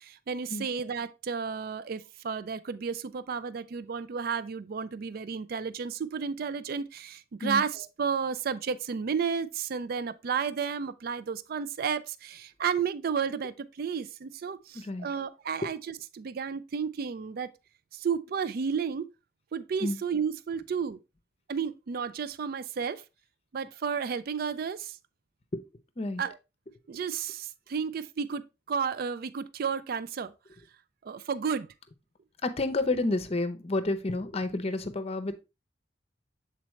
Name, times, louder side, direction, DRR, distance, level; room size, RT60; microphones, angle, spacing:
voice 1, 0.0-17.5 17.9-19.1 19.5-21.0 21.5-23.0 23.5-25.0 26.2-26.4 26.9-28.4 28.7-30.3 31.0-31.7, right 6 dB, 55° right, 0.4 m, -32 dB
voice 2, 14.7-15.1 19.8-20.0 26.0-26.2 32.4-35.4, left 2 dB, 35° left, 0.7 m, -30 dB
7.5 x 4.1 x 3.1 m
head